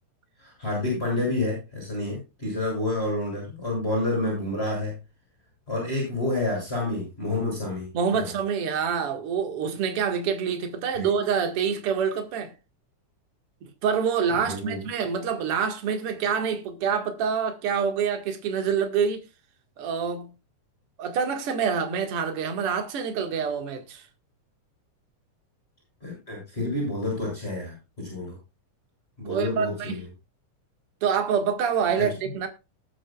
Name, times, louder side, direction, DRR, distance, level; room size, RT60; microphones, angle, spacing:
voice 1, 0.4-4.9 5.7-7.9 8.1-8.3 10.9-11.1 14.4-14.8 26.0-28.3 29.2-30.0 32.0-32.1, left 2 dB, 15° left, 7.0 m, -29 dB
voice 2, 7.9-12.5 13.8-19.2 19.8-20.3 21.0-24.0 29.3-30.0 31.0-32.5, right 6 dB, 50° right, 2.5 m, -26 dB
19.0 x 8.8 x 2.4 m
omnidirectional pair, 3.8 m